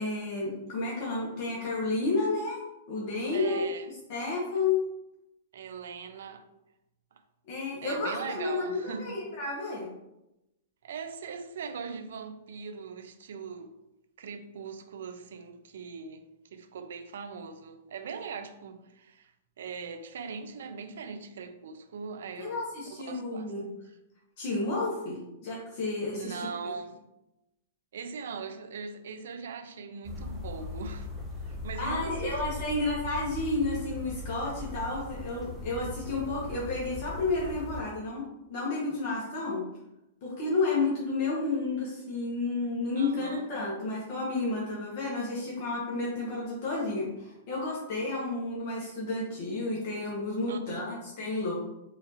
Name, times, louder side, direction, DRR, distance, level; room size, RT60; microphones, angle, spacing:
voice 1, 0.0-2.6 2.9-3.6 4.1-4.8 7.5-9.9 22.4-23.6 24.4-26.4 31.8-38.2 38.5-39.6 40.2-51.5, left 3 dB, 45° left, 0.9 m, -31 dB
voice 2, 3.3-3.9 5.5-6.5 7.1-7.2 7.8-9.2 10.8-13.7 14.2-16.2 16.5-23.5 26.1-27.0 27.9-31.1 31.5-32.8 43.0-43.5 50.5-51.0, right 5 dB, 75° right, 0.4 m, -40 dB
sound 1, 30.0-37.8, left 2 dB, 5° right, 0.6 m, -39 dB
4.2 x 2.5 x 2.8 m
hypercardioid pair, 165°, 0 cm